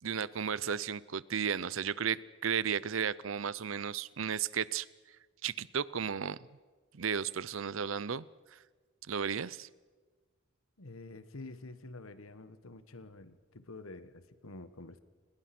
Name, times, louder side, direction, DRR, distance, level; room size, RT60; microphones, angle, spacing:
voice 1, 0.0-4.9 5.4-6.4 6.9-8.3 8.5-8.6 9.1-9.7, right 7 dB, 75° right, 20 dB, 0.6 m, -34 dB
voice 2, 10.8-15.0, left 2 dB, 90° left, 12 dB, 1.4 m, -48 dB
30.0 x 20.5 x 6.1 m, 1.4 s
head